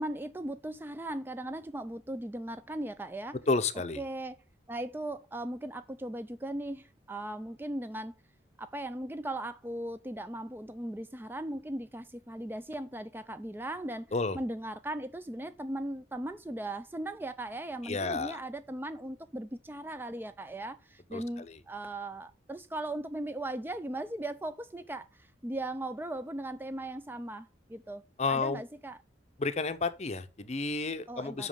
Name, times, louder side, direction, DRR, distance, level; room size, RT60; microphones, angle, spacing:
voice 1, 0.0-3.4 4.0-4.4 4.7-8.1 8.6-28.0 28.3-29.0 31.1-31.5, right 1 dB, 10° right, 0.3 m, -38 dB
voice 2, 3.5-4.0 14.1-14.4 17.8-18.4 21.1-21.2 28.2-28.6 29.4-31.5, left 3 dB, 35° left, 0.6 m, -31 dB
5.8 x 5.2 x 5.4 m
head